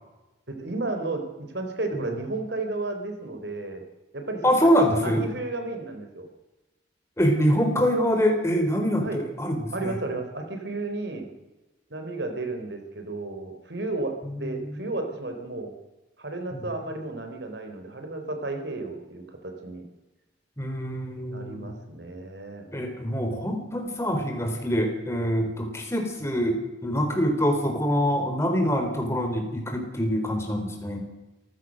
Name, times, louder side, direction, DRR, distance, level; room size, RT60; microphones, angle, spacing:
voice 1, 0.5-3.8 4.1-6.3 9.0-9.2 9.7-11.3 11.9-15.7 16.2-19.8 21.3-22.7, right 2 dB, 65° right, 5 dB, 4.0 m, -33 dB
voice 2, 4.4-5.2 7.2-10.0 14.4-14.5 16.5-16.7 20.6-21.7 22.7-31.1, equal, 15° left, 4 dB, 4.1 m, -25 dB
27.0 x 15.5 x 6.5 m, 1.1 s
head